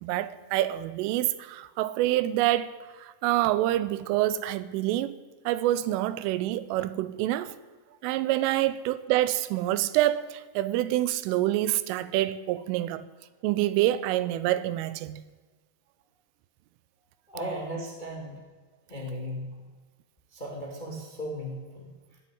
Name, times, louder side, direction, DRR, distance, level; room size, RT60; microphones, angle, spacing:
voice 1, 0.0-5.2 5.5-7.5 8.0-13.0 13.4-15.2, right 14 dB, 90° right, 3.3 m, -27 dB
voice 2, 17.3-18.3 18.9-19.6 20.3-22.2, equal, 20° left, 1.4 m, -36 dB
17.0 x 8.3 x 9.5 m
omnidirectional pair, 5.6 m